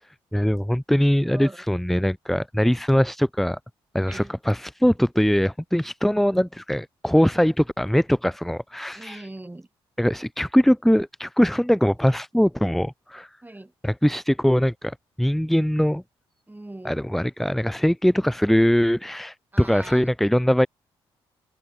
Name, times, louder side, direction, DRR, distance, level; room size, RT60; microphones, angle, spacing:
voice 1, 0.3-3.6 3.9-9.3 10.0-13.3 13.8-16.0 16.8-20.7, equal, ahead, 0.7 m, -21 dB
voice 2, 1.2-1.6 4.1-4.3 9.0-9.7 13.4-13.7 16.5-17.0 19.5-20.0, right 2 dB, 15° right, 7.5 m, -40 dB
hypercardioid pair, 50°, 12 cm